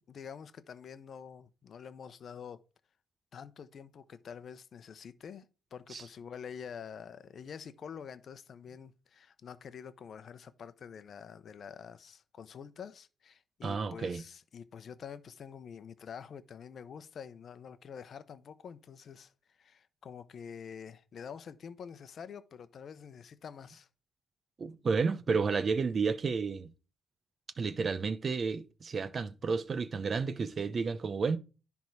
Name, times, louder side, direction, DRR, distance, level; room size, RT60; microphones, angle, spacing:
voice 1, 0.1-2.6 3.3-5.5 5.7-23.9, left 7 dB, 55° left, 0.7 m, -47 dB
voice 2, 13.6-14.2 24.6-26.7 27.6-31.4, right 5 dB, 45° right, 0.7 m, -31 dB
10.5 x 3.6 x 4.7 m
cardioid pair, 90°, 0 cm